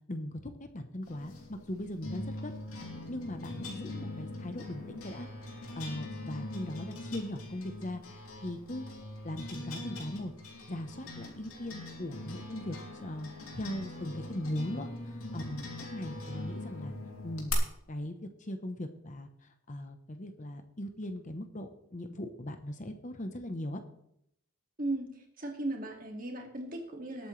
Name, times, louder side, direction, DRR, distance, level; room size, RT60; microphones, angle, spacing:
voice 1, 0.1-2.5 3.1-8.8 9.2-10.3 10.7-16.9 17.2-17.5 17.9-23.8, left 1 dB, 35° left, 7 dB, 0.9 m, -39 dB
sound 1, 1.1-17.5, left 2 dB, 80° left, 2.8 m, -42 dB
voice 2, 25.4-27.3, right 2 dB, 40° right, 2 dB, 2.1 m, -36 dB
20.0 x 8.7 x 3.3 m, 0.74 s
head